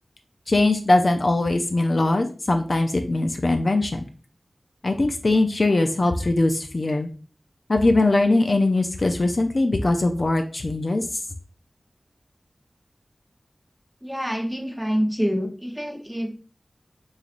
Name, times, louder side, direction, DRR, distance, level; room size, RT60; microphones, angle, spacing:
voice 1, 0.5-4.0 4.8-7.1 7.7-11.1, left 2 dB, 55° left, 5 dB, 0.4 m, -21 dB
voice 2, 14.0-16.3, equal, ahead, 3 dB, 0.7 m, -26 dB
3.9 x 3.1 x 2.4 m, 0.37 s
wide cardioid pair, 70°, 0 cm